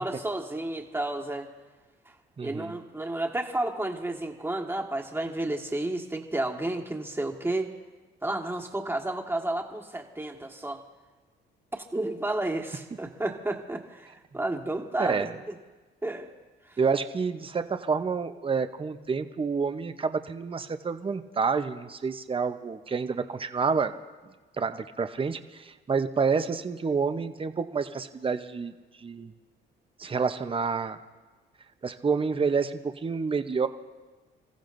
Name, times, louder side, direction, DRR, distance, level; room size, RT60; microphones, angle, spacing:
voice 1, 0.0-1.5 2.4-7.7 8.2-10.8 11.7-15.5 16.0-16.3 16.7-16.8, right 2 dB, 10° right, 2 dB, 1.6 m, -31 dB
voice 2, 2.4-2.8 15.0-15.4 16.8-23.9 24.6-28.7 29.0-29.3 30.0-31.0 31.8-33.7, right 5 dB, 25° right, 9 dB, 0.8 m, -28 dB
29.0 x 15.0 x 2.6 m, 1.3 s
cardioid pair, 90°, 20 cm